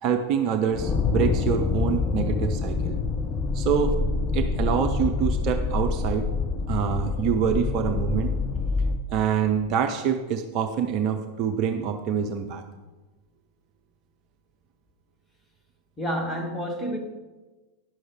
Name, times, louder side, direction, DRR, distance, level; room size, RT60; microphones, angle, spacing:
voice 1, 0.0-3.0 3.5-4.0 4.3-6.3 6.7-8.3 9.1-12.6, right 7 dB, 40° right, 6 dB, 0.6 m, -26 dB
sound 1, 0.7-9.0, left 4 dB, 25° left, 0.7 m, -26 dB
voice 2, 16.0-17.0, equal, 5° left, 1 dB, 1.5 m, -29 dB
10.5 x 6.3 x 4.9 m, 1.2 s
figure-of-eight pair, 90°, 0 cm